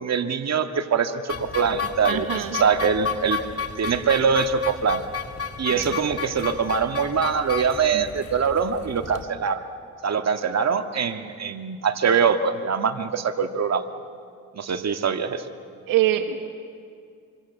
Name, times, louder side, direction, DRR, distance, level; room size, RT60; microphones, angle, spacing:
voice 1, 0.0-3.4 3.8-5.0 5.6-9.6 10.0-13.8 14.5-15.4, right 6 dB, 50° right, 7 dB, 1.9 m, -23 dB
sound 1, 1.3-9.2, left 6 dB, 45° left, 2.1 m, -33 dB
voice 2, 2.1-2.6 5.7-5.9 7.9-8.0 15.9-16.4, right 12 dB, 85° right, 7 dB, 1.5 m, -24 dB
26.5 x 24.0 x 8.2 m, 2.2 s
supercardioid pair, 65°, 33 cm